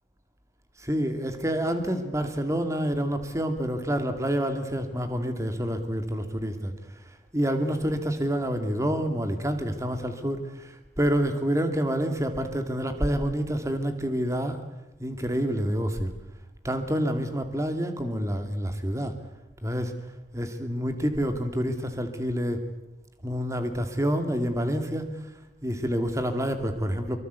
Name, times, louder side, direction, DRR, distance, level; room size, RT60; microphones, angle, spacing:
voice 1, 0.8-6.7 7.3-14.6 15.0-16.1 16.6-19.1 19.6-19.9 20.3-22.6 23.2-25.1 25.6-27.2, equal, 15° right, 7 dB, 2.3 m, -28 dB
24.0 x 23.5 x 8.2 m, 1.0 s
head